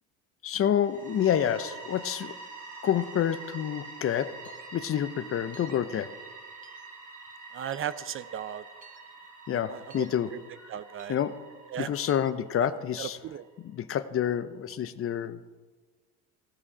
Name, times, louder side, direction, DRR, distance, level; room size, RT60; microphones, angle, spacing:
voice 1, 0.4-2.3 2.8-6.1 9.5-10.7 11.1-11.4 11.8-13.2 13.6-15.4, left 9 dB, 40° left, 13 dB, 0.7 m, -28 dB
sound 1, 0.7-13.4, right 4 dB, 75° right, 4.1 m, -46 dB
sound 2, 4.4-4.7 5.5-5.8 6.6-6.9 7.7-8.0 8.8-9.0 9.9-10.1 11.0-11.2 12.1-12.3, right 5 dB, 20° right, 1.0 m, -54 dB
voice 2, 7.5-8.6 9.7-10.0 10.7-11.1 11.7-11.9 13.0-13.4, right 9 dB, 40° right, 15 dB, 0.5 m, -36 dB
16.5 x 7.2 x 5.0 m, 1.4 s
supercardioid pair, 90°, 35 cm